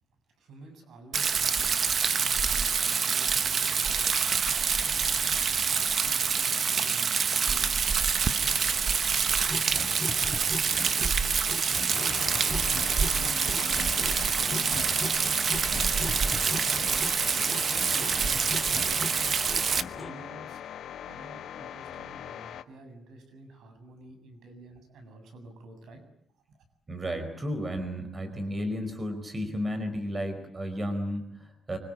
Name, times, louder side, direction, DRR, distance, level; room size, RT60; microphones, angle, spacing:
voice 1, 0.4-4.1 4.8-7.7 8.1-10.7 11.6-12.5 12.8-15.3 15.9-17.0 17.3-19.2 19.9-20.6 21.0-26.0 26.5-26.6, right 2 dB, 90° right, 7 dB, 7.7 m, -49 dB
Rain, 1.1-19.8, right 6 dB, 40° right, 1.1 m, -26 dB
sound 1, 9.5-20.1, left 3 dB, 15° left, 2.7 m, -39 dB
sound 2, 11.9-22.6, left 10 dB, 80° left, 1.4 m, -41 dB
voice 2, 26.9-31.8, equal, 20° right, 8 dB, 4.8 m, -33 dB
25.5 x 25.5 x 8.9 m, 0.69 s
wide cardioid pair, 160°, 0 cm